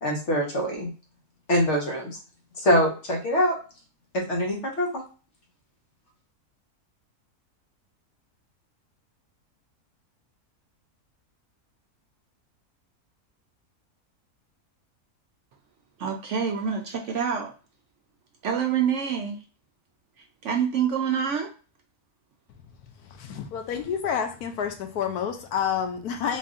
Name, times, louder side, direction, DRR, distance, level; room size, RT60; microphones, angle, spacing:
voice 1, 0.0-0.9 1.5-2.2 2.6-3.6 4.1-5.0, equal, 50° left, 0 dB, 1.3 m, -24 dB
voice 2, 16.0-17.5 18.4-19.4 20.2-21.5, right 7 dB, 65° right, 2 dB, 0.8 m, -26 dB
voice 3, 23.0-26.4, left 7 dB, 80° left, 6 dB, 1.2 m, -29 dB
4.0 x 2.5 x 3.7 m, 0.37 s
omnidirectional pair, 1.6 m